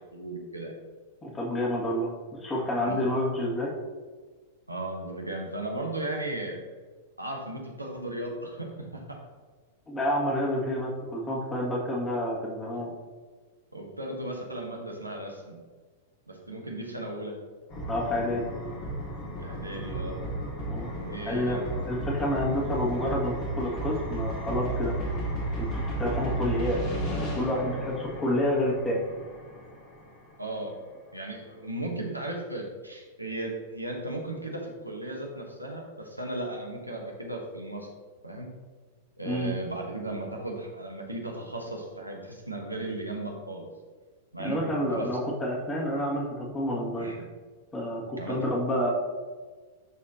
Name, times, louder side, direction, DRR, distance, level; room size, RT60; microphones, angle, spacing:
voice 1, 0.1-0.7 2.8-3.0 4.7-6.6 7.2-9.2 13.7-15.6 16.3-17.4 19.4-20.2 20.9-21.6 30.4-30.7 31.1-37.9 38.2-38.5 39.2-43.7 44.3-44.6 44.9-45.1 47.0-47.3 48.2-48.5, right 1 dB, 85° right, 1 dB, 1.2 m, -36 dB
voice 2, 1.2-2.1 2.4-3.7 9.9-12.9 17.9-18.5 20.7-20.9 21.2-24.9 25.6-26.8 27.1-29.0 39.2-39.5 44.4-47.1 47.7-48.9, left 1 dB, 15° left, -4 dB, 2.1 m, -29 dB
sound 1, 17.7-30.5, right 1 dB, 35° left, 2.2 m, -34 dB
11.0 x 4.2 x 2.9 m, 1.4 s
figure-of-eight pair, 100°, 0 cm